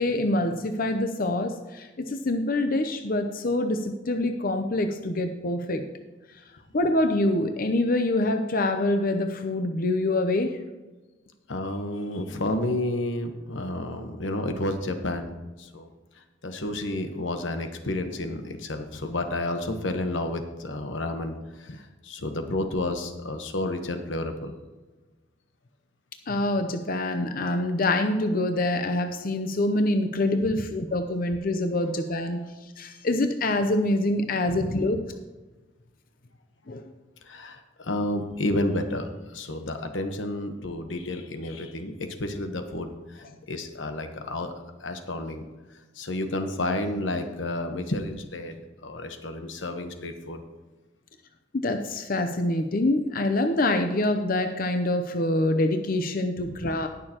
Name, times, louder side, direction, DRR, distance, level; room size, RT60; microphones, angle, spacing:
voice 1, 0.0-5.8 6.7-10.6 26.3-35.0 36.7-36.9 51.5-56.9, left 1 dB, 50° left, 6 dB, 0.7 m, -25 dB
voice 2, 11.5-15.3 15.6-15.9 16.4-24.5 30.5-30.6 34.5-34.7 37.2-44.5 44.8-45.4 45.9-50.4, left 1 dB, 90° left, 6 dB, 1.1 m, -31 dB
18.5 x 6.5 x 3.0 m, 1.2 s
head